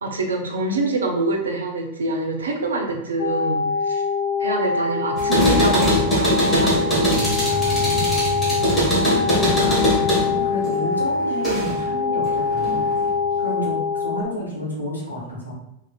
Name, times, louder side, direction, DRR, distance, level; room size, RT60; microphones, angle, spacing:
voice 1, 0.0-4.0 4.4-7.5, right 2 dB, 70° right, 3 dB, 0.5 m, -25 dB
sound 1, 3.2-14.2, left 4 dB, 40° left, 0.9 m, -24 dB
sound 2, 5.2-11.9 12.2-13.1, equal, 15° left, 1.1 m, -22 dB
voice 2, 7.5-8.2 9.2-12.9 13.4-15.5, equal, 85° left, -4 dB, 0.9 m, -31 dB
3.1 x 2.4 x 2.2 m, 0.83 s
figure-of-eight pair, 90°, 0 cm